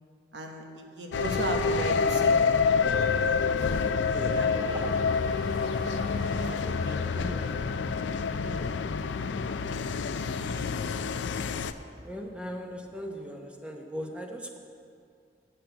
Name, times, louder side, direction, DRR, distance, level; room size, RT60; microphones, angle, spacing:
voice 1, 0.3-2.5 3.6-3.8 4.3-4.9 5.3-5.5 6.1-7.5 7.7-8.1 8.4-8.7 10.3-10.9, right 1 dB, 80° right, 3 dB, 1.2 m, -38 dB
sound 1, 1.1-11.7, left 5 dB, 90° left, 0.4 m, -27 dB
sound 2, 1.2-13.0, equal, 25° right, 2.8 m, -47 dB
voice 2, 12.0-14.6, equal, 5° right, 2 dB, 0.8 m, -38 dB
9.0 x 7.6 x 6.8 m, 2.3 s
head